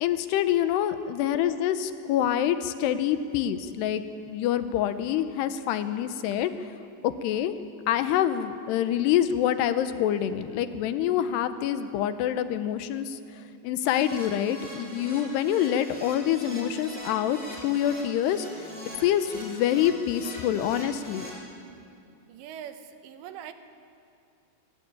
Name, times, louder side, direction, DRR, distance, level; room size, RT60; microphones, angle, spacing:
voice 1, 0.0-6.5 7.0-7.6 7.9-13.2 13.6-18.5 19.0-21.3, left 10 dB, 80° left, 11 dB, 2.8 m, -26 dB
Keyboard (musical), 13.8-21.3, equal, 10° right, 5.1 m, -42 dB
voice 2, 22.3-23.5, right 9 dB, 85° right, 8 dB, 3.4 m, -42 dB
24.5 x 15.5 x 8.8 m, 2.5 s
omnidirectional pair, 5.0 m